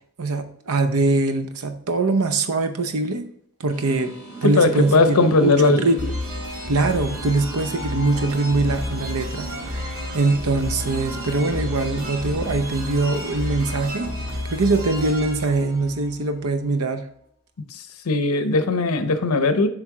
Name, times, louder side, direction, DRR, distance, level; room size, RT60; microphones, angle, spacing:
voice 1, 0.2-3.3 3.6-4.1 4.4-6.1 6.7-14.1 14.5-17.0, right 3 dB, 80° right, 8 dB, 0.7 m, -23 dB
sound 1, 3.7-14.4, right 2 dB, 10° right, 2.0 m, -40 dB
voice 2, 4.4-5.8 18.1-19.7, left 3 dB, 85° left, 10 dB, 0.7 m, -18 dB
sound 2, 6.0-16.6, left 1 dB, 65° right, 2.1 m, -31 dB
7.2 x 3.4 x 4.7 m, 0.69 s
head